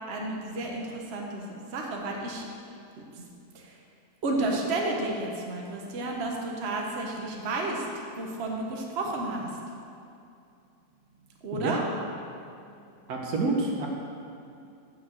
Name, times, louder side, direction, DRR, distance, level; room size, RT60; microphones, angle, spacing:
voice 1, 0.1-2.5 3.1-3.2 3.5-3.8 4.2-9.6 11.4-11.9 12.7-12.9, right 2 dB, 45° right, -1 dB, 1.2 m, -32 dB
voice 2, 13.1-13.9, right 3 dB, 75° right, 0 dB, 1.5 m, -28 dB
6.6 x 6.4 x 7.4 m, 2.6 s
omnidirectional pair, 1.6 m